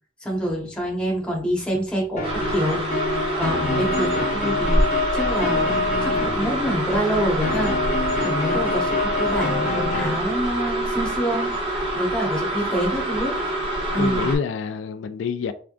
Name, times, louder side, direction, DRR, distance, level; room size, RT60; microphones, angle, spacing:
voice 1, 0.2-2.8 3.1-7.7 8.2-11.5 11.9-13.4 13.9-14.3, equal, 5° left, 1.2 m, -26 dB
sound 1, 2.2-10.2, left 3 dB, 45° left, 0.9 m, -26 dB
sound 2, 2.2-14.4, right 1 dB, 30° right, 1.3 m, -26 dB
voice 2, 14.0-15.5, left 5 dB, 85° left, 0.3 m, -27 dB
3.5 x 3.5 x 2.5 m
head